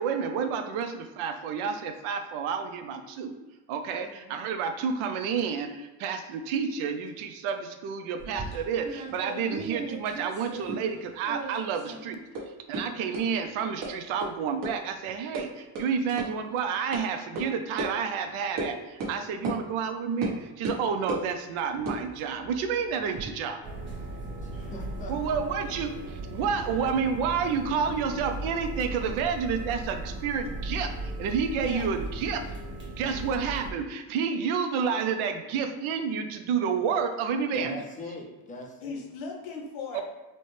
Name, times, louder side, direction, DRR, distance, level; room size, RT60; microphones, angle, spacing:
voice 1, 0.0-3.3 3.7-12.2 12.7-23.6 25.1-32.4 32.9-37.8 39.9-40.0, right 6 dB, 85° right, 7 dB, 0.6 m, -30 dB
voice 2, 4.0-4.4 24.5-24.7 31.6-31.9 38.8-40.0, left 4 dB, 75° left, 2 dB, 0.9 m, -39 dB
sound 1, 8.2-11.0 11.2-12.0 12.3-12.4 12.7-12.8 13.1-13.2 13.8-13.9 14.2-14.3 14.6-14.7 15.0-15.4 15.8-15.9 16.2-16.3 16.9-17.0 17.4-17.5 17.8-17.9 18.6-18.7 19.0-19.1 19.4-19.6 20.2-20.3 20.6-21.3 21.8-23.3, right 2 dB, 60° right, 1.1 m, -35 dB
sound 2, 23.6-33.7, right 2 dB, 25° right, 0.8 m, -37 dB
voice 3, 24.4-25.4 26.8-26.9 37.5-39.0, left 2 dB, 20° left, 0 dB, 0.3 m, -41 dB
4.2 x 2.1 x 3.1 m, 1.2 s
cardioid pair, 160°, 48 cm